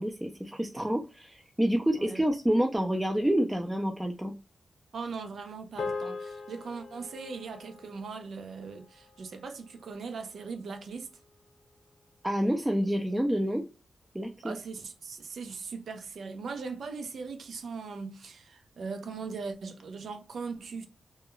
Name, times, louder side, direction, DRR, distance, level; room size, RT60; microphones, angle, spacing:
voice 1, 0.0-4.3 12.2-13.6 14.1-14.6, equal, 10° right, 0.3 m, -28 dB
voice 2, 4.9-11.1 14.4-20.9, right 4 dB, 80° right, 0.5 m, -39 dB
sound 1, 5.8-10.3, left 4 dB, 75° left, 0.3 m, -41 dB
2.2 x 2.2 x 2.9 m
wide cardioid pair, 120°, 0 cm